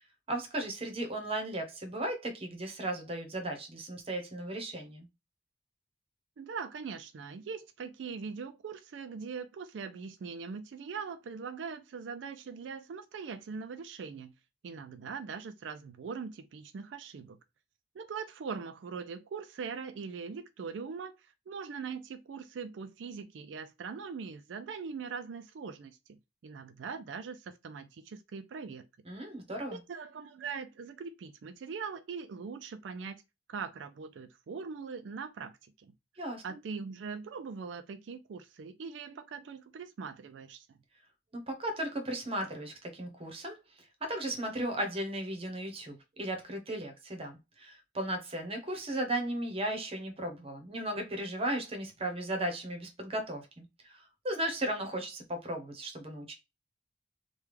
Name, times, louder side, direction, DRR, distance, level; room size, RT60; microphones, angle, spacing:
voice 1, 0.3-5.1 29.1-29.8 36.2-36.6 41.3-56.3, right 1 dB, 35° right, 0.9 m, -36 dB
voice 2, 6.4-14.3 14.6-17.4 17.9-26.0 26.4-28.8 29.9-33.2 33.5-35.5 35.8-35.9 36.4-40.7, right 5 dB, 80° right, 0.4 m, -41 dB
3.3 x 2.3 x 3.2 m
head